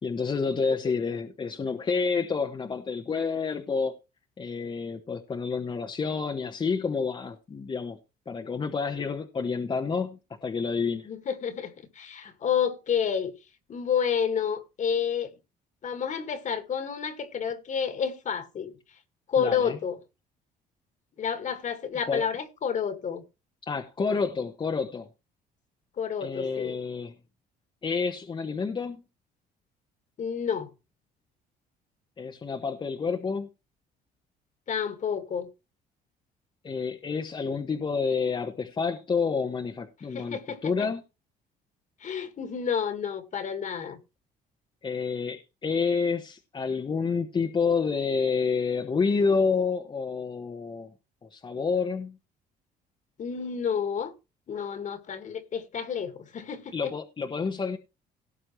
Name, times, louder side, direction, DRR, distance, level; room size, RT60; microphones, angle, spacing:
voice 1, 0.0-3.9 4.4-8.0 8.3-11.1 19.4-19.8 22.1-22.2 23.6-25.1 26.2-27.1 27.8-29.0 32.2-33.5 36.6-41.0 44.8-50.9 51.2-52.2 56.7-57.8, left 5 dB, 30° left, 1.2 m, -29 dB
voice 2, 10.9-13.3 13.7-15.3 15.8-18.7 19.3-20.0 21.2-23.2 26.0-26.8 30.2-30.7 34.7-35.5 40.1-40.9 42.0-44.0 53.2-54.1 54.5-56.9, left 7 dB, 45° left, 2.0 m, -30 dB
17.5 x 7.2 x 3.2 m
cardioid pair, 110°, 17 cm